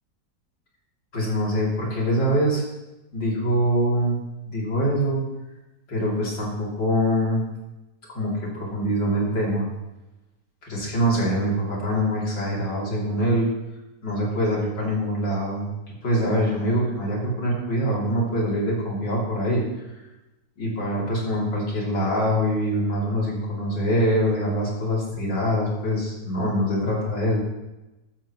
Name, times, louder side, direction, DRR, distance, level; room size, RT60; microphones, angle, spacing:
voice 1, 1.1-2.6 3.1-4.2 4.5-5.2 5.9-7.4 8.1-9.7 10.6-13.5 14.0-15.7 16.0-19.8 20.6-27.4, equal, 80° left, -4 dB, 4.0 m, -24 dB
14.0 x 12.0 x 3.2 m, 1.0 s
omnidirectional pair, 1.9 m